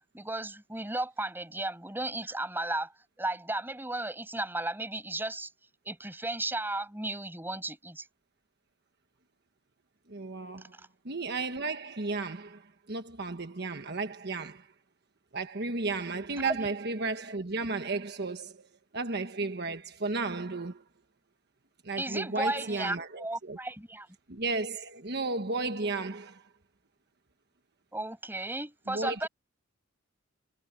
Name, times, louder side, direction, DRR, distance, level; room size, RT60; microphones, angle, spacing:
voice 1, 0.0-2.9 3.2-5.5 5.8-8.0 16.4-16.7 22.0-24.1 27.9-29.3, right 2 dB, 10° right, 6.3 m, -34 dB
voice 2, 10.1-10.7 11.0-14.7 15.3-18.7 18.9-20.8 21.8-23.6 24.3-26.5 28.9-29.3, right 3 dB, 55° right, 1.3 m, -34 dB
head